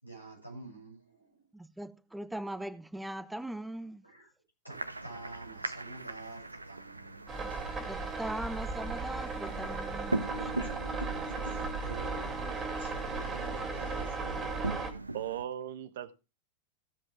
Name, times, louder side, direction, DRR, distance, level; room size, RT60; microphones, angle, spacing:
voice 1, 0.0-1.5 4.0-4.3 4.6-7.4 10.5-14.8, right 3 dB, 90° left, 7.2 m, -48 dB
voice 2, 1.5-4.0 7.9-10.5, right 1 dB, 5° right, 0.6 m, -40 dB
sound 1, 4.7-15.4, right 2 dB, 80° right, 0.8 m, -41 dB
sound 2, 7.3-14.9, right 3 dB, 20° right, 2.8 m, -36 dB
voice 3, 15.1-16.1, right 10 dB, 55° right, 1.2 m, -37 dB
15.5 x 8.0 x 3.5 m
figure-of-eight pair, 90°, 0 cm